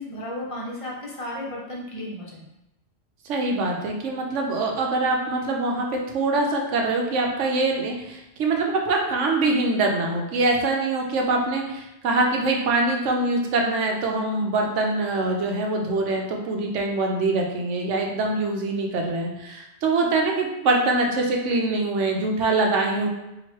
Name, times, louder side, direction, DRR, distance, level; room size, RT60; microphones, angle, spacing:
voice 1, 0.0-2.4, left 1 dB, 30° left, -3 dB, 0.8 m, -34 dB
voice 2, 3.2-23.1, right 2 dB, 85° right, 1 dB, 1.0 m, -24 dB
3.0 x 2.7 x 4.3 m, 0.90 s
omnidirectional pair, 1.2 m